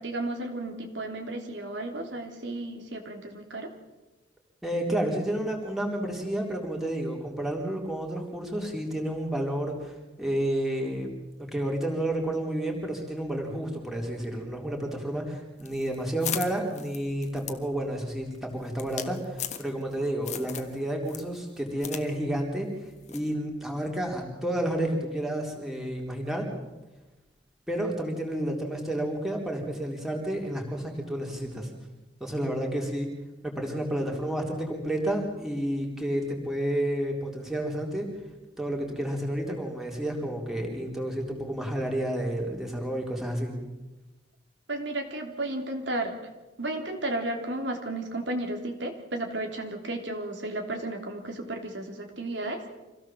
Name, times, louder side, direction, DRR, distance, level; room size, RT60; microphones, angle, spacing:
voice 1, 0.0-3.7 44.7-46.1 46.6-52.6, right 1 dB, 75° right, 3 dB, 3.3 m, -33 dB
voice 2, 4.6-11.1 11.5-22.7 23.1-26.5 27.7-31.7 32.2-33.1 33.4-38.1 38.6-43.5, right 1 dB, ahead, 0 dB, 3.9 m, -30 dB
sound 1, 15.6-19.9 20.2-20.7 21.1-22.0 22.3-22.4 23.1-23.3, left 9 dB, 40° left, 1.5 m, -37 dB
26.0 x 17.0 x 7.4 m, 1.1 s
head